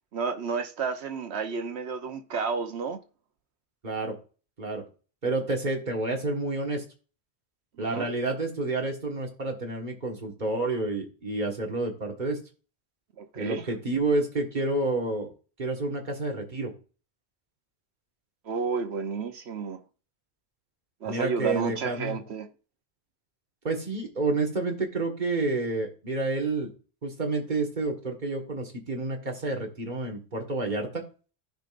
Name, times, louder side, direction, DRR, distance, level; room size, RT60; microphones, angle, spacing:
voice 1, 0.1-3.0 7.8-8.1 13.2-13.7 18.4-19.8 21.0-22.5, right 5 dB, 80° right, 1.1 m, -31 dB
voice 2, 3.8-4.1 4.6-4.8 5.2-6.8 7.8-12.4 13.3-15.3 15.6-16.7 21.0-22.2 23.6-26.7 27.0-31.0, right 2 dB, 45° right, 1.8 m, -29 dB
15.0 x 5.2 x 2.5 m
omnidirectional pair, 1.1 m